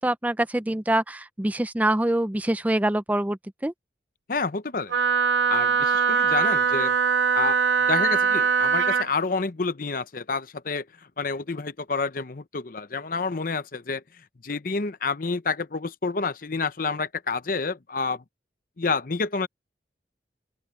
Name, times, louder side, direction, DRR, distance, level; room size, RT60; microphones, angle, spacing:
voice 1, 0.0-3.7, right 1 dB, 10° right, 0.5 m, -25 dB
voice 2, 4.3-5.0 5.5-7.0 7.3-7.6 7.9-10.8 11.2-14.0 14.4-18.2 18.8-19.5, left 4 dB, 50° left, 0.8 m, -28 dB
Wind instrument woodwind instrument, 4.9-9.1, right 6 dB, 85° right, 0.6 m, -22 dB
open air
head